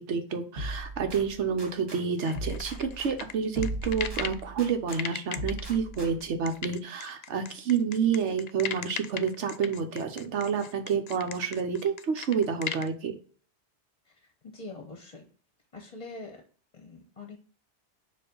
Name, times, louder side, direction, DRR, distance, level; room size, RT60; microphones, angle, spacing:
voice 1, 0.0-13.2, right 6 dB, 90° right, 6 dB, 1.3 m, -29 dB
sound 1, 0.6-2.0 2.3-5.0 5.4-6.4, right 1 dB, 55° right, 2.0 m, -38 dB
sound 2, 2.2-4.4 4.9-12.9, left 8 dB, 55° left, 0.5 m, -37 dB
voice 2, 14.2-15.2 15.7-16.4 16.7-17.4, left 2 dB, 35° left, 4 dB, 0.9 m, -44 dB
6.9 x 2.8 x 5.3 m, 0.42 s
omnidirectional pair, 1.2 m